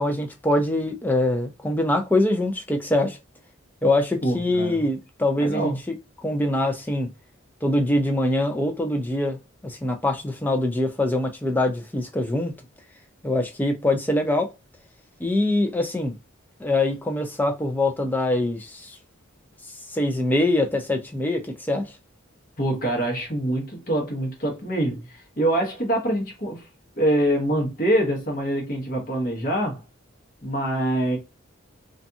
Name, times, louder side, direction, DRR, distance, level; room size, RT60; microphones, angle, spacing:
voice 1, 0.0-3.2 3.8-6.0 6.2-7.1 7.6-12.5 13.2-14.5 15.2-16.2 16.6-19.0 19.9-22.0, left 1 dB, 10° left, 0.3 m, -24 dB
voice 2, 4.2-4.8 5.4-5.7 22.6-26.7 27.0-29.8 30.4-31.2, right 1 dB, 40° left, 1.0 m, -25 dB
2.5 x 2.3 x 2.6 m
head